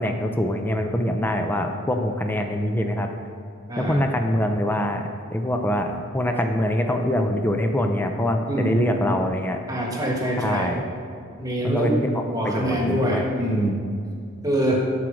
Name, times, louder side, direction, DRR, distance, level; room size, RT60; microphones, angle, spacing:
voice 1, 0.0-3.1 3.8-9.6 10.4-10.8 11.6-13.3, left 1 dB, 10° left, 4 dB, 0.5 m, -24 dB
voice 2, 3.7-4.0 8.5-8.8 9.7-10.7 11.4-12.0 12.3-13.8 14.4-14.8, right 1 dB, 15° right, -1 dB, 1.4 m, -24 dB
11.5 x 4.7 x 6.3 m, 2.3 s
head